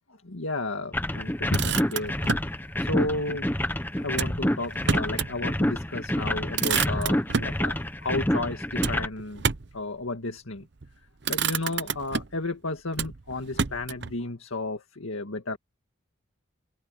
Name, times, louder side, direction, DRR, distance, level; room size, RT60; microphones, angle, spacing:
voice 1, 0.2-2.5 2.8-3.5 4.0-9.4 9.7-10.7 11.3-15.6, left 2 dB, 85° left, 2.0 m, -33 dB
sound 1, 0.9-9.1, left 1 dB, 10° left, 1.0 m, -28 dB
Motor vehicle (road), 1.3-2.5 4.1-5.4 5.8-5.9 6.2-7.6 8.8-9.8 10.6-10.9 11.2-12.5 12.9-14.1, right 6 dB, 55° right, 0.7 m, -30 dB
head